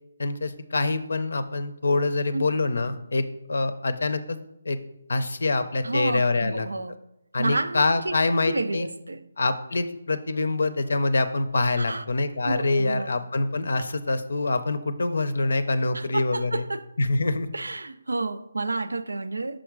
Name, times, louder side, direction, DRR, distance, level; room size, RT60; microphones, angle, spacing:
voice 1, 0.2-4.4 4.6-4.8 5.1-6.7 7.3-8.9 9.4-16.6 17.0-17.5, left 2 dB, 70° left, 0.5 m, -25 dB
voice 2, 5.8-7.0 7.4-8.1 8.4-9.3 11.8-12.0 12.4-13.1 15.9-16.9 17.5-19.6, right 3 dB, 85° right, 0.4 m, -30 dB
6.2 x 3.8 x 4.7 m
figure-of-eight pair, 155°, 0 cm